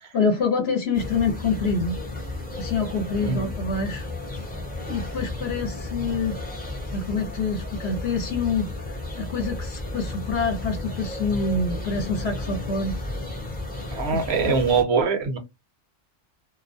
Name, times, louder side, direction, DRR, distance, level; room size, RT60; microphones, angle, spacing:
voice 1, 0.1-2.0 2.6-4.1 4.3-4.5 4.9-6.4 6.9-12.9 14.1-14.5, left 4 dB, 60° left, 0.9 m, -26 dB
sound 1, 0.9-14.8, left 2 dB, 10° left, 0.6 m, -33 dB
voice 2, 13.9-15.4, right 5 dB, 60° right, 0.9 m, -23 dB
2.4 x 2.1 x 2.5 m
omnidirectional pair, 1.3 m